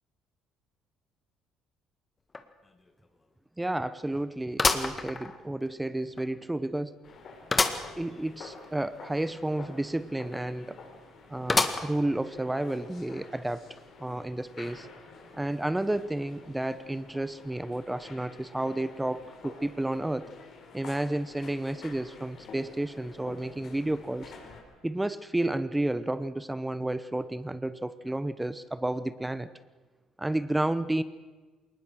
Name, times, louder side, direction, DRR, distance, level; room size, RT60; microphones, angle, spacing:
sound 1, 2.3-2.4 2.9-3.0 4.6-5.7 6.2-6.3 7.5-7.9 8.3-8.4 8.6-8.7 11.5-12.1 12.7-12.8 13.8-13.9, left 3 dB, 25° left, 1.7 m, -27 dB
voice 1, 3.6-7.0 7.9-10.8 11.3-13.7 14.0-14.9 15.3-20.3 20.7-24.3 24.8-29.5 30.2-31.0, right 1 dB, 10° right, 15 dB, 0.9 m, -31 dB
sound 2, 7.0-24.6, left 4 dB, 55° left, 4.6 m, -49 dB
21.5 x 19.5 x 6.4 m, 1.3 s
supercardioid pair, 75°, 0 cm